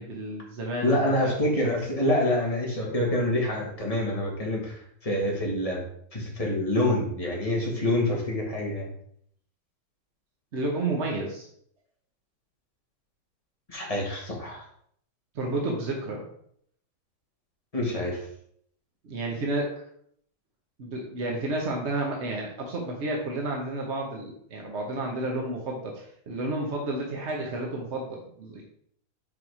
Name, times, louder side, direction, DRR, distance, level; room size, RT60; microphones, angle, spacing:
voice 1, 0.0-1.3 1.6-1.7 10.5-11.5 15.3-16.3 19.0-19.7 20.8-28.6, right 2 dB, 45° right, -1 dB, 0.9 m, -31 dB
voice 2, 0.8-5.8 6.1-8.9 13.7-14.6 17.7-18.2, left 1 dB, 20° left, -2 dB, 1.6 m, -26 dB
5.6 x 5.0 x 4.8 m, 0.67 s
omnidirectional pair, 2.3 m